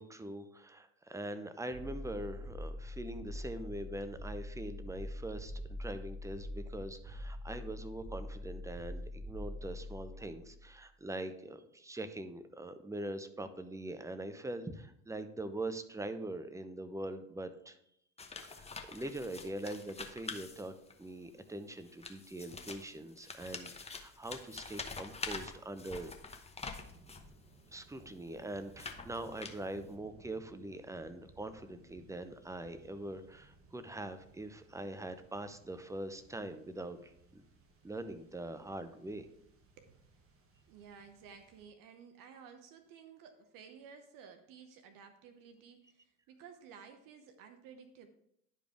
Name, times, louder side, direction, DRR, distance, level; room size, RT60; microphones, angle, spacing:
voice 1, 0.0-17.8 18.4-26.1 27.7-37.4 37.8-39.3, right 1 dB, 10° right, 10 dB, 0.7 m, -43 dB
sound 1, 1.7-10.8, left 1 dB, 75° right, 2.7 m, -44 dB
sound 2, 18.2-21.1 21.8-27.3 28.0-29.9, left 4 dB, 15° left, 0.9 m, -46 dB
sound 3, 26.7-41.7, right 3 dB, 35° right, 1.4 m, -62 dB
voice 2, 39.8-40.2 40.7-48.1, right 6 dB, 55° right, 7 dB, 0.8 m, -55 dB
11.0 x 5.1 x 3.5 m, 0.73 s
figure-of-eight pair, 60°, 39 cm